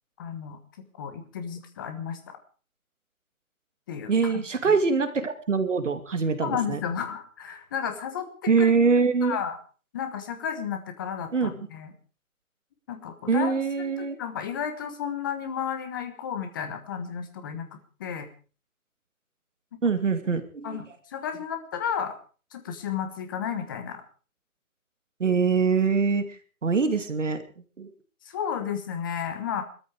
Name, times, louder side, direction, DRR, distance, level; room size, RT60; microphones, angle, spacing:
voice 1, 0.2-0.6 1.0-2.2 3.9-4.4 6.4-8.3 8.6-8.7 9.2-9.6 9.9-11.9 12.9-13.5 14.2-18.3 20.6-22.2 22.5-24.0 28.3-29.6, left 8 dB, 15° left, 8 dB, 1.3 m, -32 dB
voice 2, 4.1-6.8 8.5-9.4 11.3-11.5 13.3-14.2 19.8-20.8 25.2-27.4 27.8-27.9, right 5 dB, 55° right, 9 dB, 2.6 m, -24 dB
20.5 x 13.5 x 4.8 m, 0.39 s
figure-of-eight pair, 155°, 43 cm